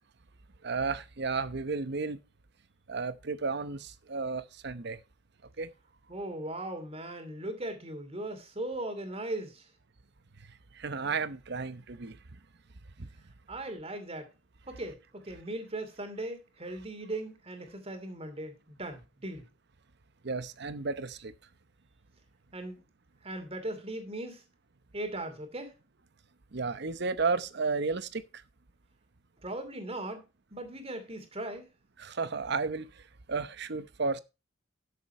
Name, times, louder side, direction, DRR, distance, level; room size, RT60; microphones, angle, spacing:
voice 1, 0.6-2.2 2.9-5.0 5.6-5.7 10.7-12.2 13.0-13.1 20.2-21.3 26.5-28.2 32.0-33.0 33.3-34.2, right 4 dB, 60° right, 0.9 m, -33 dB
voice 2, 6.1-9.7 13.5-14.3 14.7-19.4 22.5-22.8 23.2-24.4 24.9-25.7 29.4-30.2 30.5-31.7, right 1 dB, 30° right, 2.6 m, -38 dB
12.0 x 7.2 x 4.3 m
head